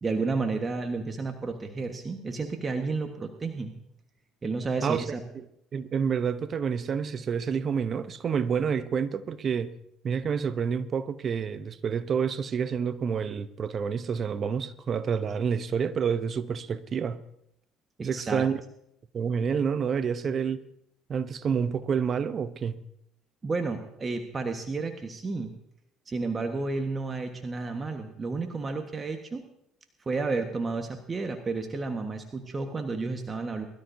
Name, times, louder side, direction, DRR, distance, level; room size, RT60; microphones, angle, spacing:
voice 1, 0.0-3.7 4.4-5.2 18.0-18.4 23.4-25.5 26.1-29.5 30.0-33.7, right 3 dB, 30° right, 1.4 m, -31 dB
voice 2, 5.7-9.7 10.0-17.2 18.0-18.6 19.1-20.6 21.1-22.8, right 6 dB, 45° right, 0.8 m, -28 dB
22.0 x 12.5 x 2.7 m
supercardioid pair, 70°, 0 cm